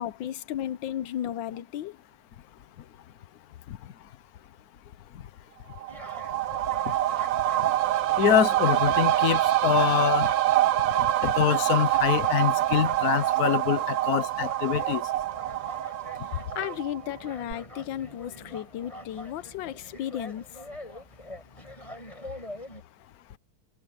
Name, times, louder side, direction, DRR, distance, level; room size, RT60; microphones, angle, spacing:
voice 1, 0.0-2.0 16.3-20.4, left 11 dB, 90° left, 1.5 m, -34 dB
sound 1, 5.7-17.2 17.5-17.6, right 14 dB, 75° right, 1.6 m, -25 dB
sound 2, 5.9-22.8, left 1 dB, 15° left, 6.6 m, -45 dB
voice 2, 8.2-10.3 11.0-15.1, left 11 dB, 60° left, 1.3 m, -25 dB
omnidirectional pair, 2.0 m